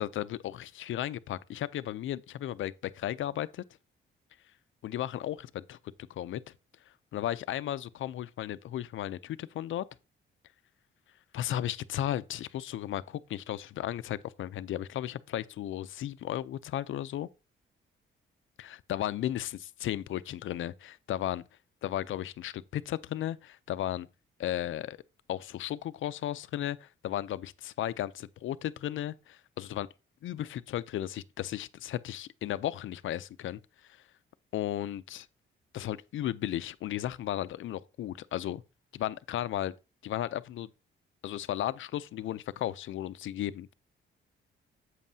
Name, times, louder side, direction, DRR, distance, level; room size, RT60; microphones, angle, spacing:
voice 1, 0.0-3.6 4.8-5.8 6.1-6.4 7.1-9.8 11.3-17.3 18.6-21.4 21.8-24.1 24.4-25.0 25.3-29.9 30.2-34.0 34.5-35.3 35.7-38.6 38.9-39.7 40.0-40.7 41.2-43.7, left 12 dB, 70° left, 0.5 m, -35 dB
8.2 x 7.4 x 2.7 m
cardioid pair, 95°, 21 cm